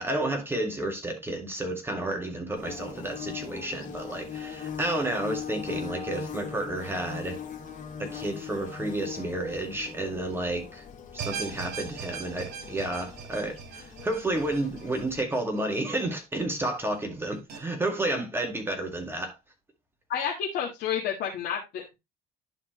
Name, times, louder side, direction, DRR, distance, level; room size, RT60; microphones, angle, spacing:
voice 1, 0.0-7.4 8.0-10.8 11.1-19.3, right 1 dB, 15° right, 1.9 m, -31 dB
Bird / Buzz, 2.6-15.2, left 7 dB, 50° left, 1.9 m, -40 dB
sound 1, 11.2-16.4 16.8-16.9 17.5-17.6, right 7 dB, 70° right, 2.2 m, -40 dB
voice 2, 20.1-21.9, left 8 dB, 75° left, 1.7 m, -30 dB
11.0 x 4.3 x 3.1 m
cardioid pair, 110°, 17 cm